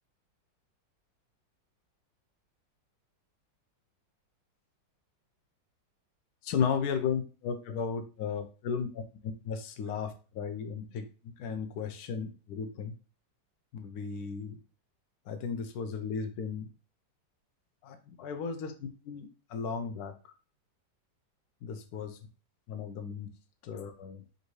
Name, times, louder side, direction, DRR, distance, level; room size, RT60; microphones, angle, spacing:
voice 1, 6.4-11.1 11.4-12.9 13.7-14.6 15.3-16.7 17.8-20.1 21.6-22.2 22.7-23.3 23.6-24.2, left 6 dB, 65° left, 7 dB, 1.0 m, -35 dB
5.2 x 2.6 x 3.1 m, 0.35 s
omnidirectional pair, 2.0 m